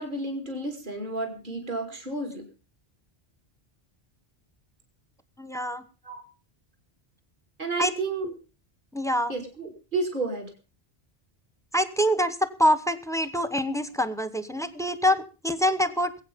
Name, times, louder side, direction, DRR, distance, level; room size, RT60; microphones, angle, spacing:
voice 1, 0.0-2.5 6.0-6.2 7.6-8.3 9.3-10.5, right 3 dB, 50° right, 4 dB, 2.6 m, -31 dB
voice 2, 5.4-5.8 7.8-7.9 8.9-9.3 11.7-16.1, equal, 5° left, 14 dB, 1.0 m, -25 dB
21.0 x 8.6 x 5.3 m, 0.34 s
omnidirectional pair, 1.0 m